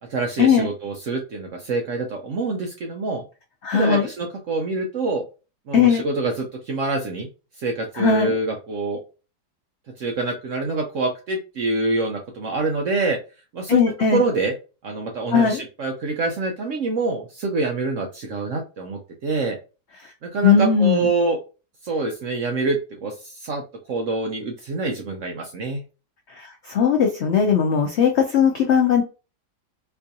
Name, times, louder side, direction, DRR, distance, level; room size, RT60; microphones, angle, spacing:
voice 1, 0.1-3.2 3.7-5.2 5.7-7.3 7.6-9.0 10.0-13.2 13.5-13.8 14.1-14.5 14.8-19.6 20.2-21.4 21.8-23.6 23.9-25.8, right 3 dB, 65° right, 2 dB, 0.7 m, -26 dB
voice 2, 3.6-4.1 5.7-6.0 8.0-8.4 13.7-14.2 15.3-15.6 20.4-21.1 26.3-29.0, left 6 dB, 75° left, 2 dB, 0.6 m, -18 dB
4.4 x 2.5 x 2.7 m, 0.32 s
omnidirectional pair, 1.8 m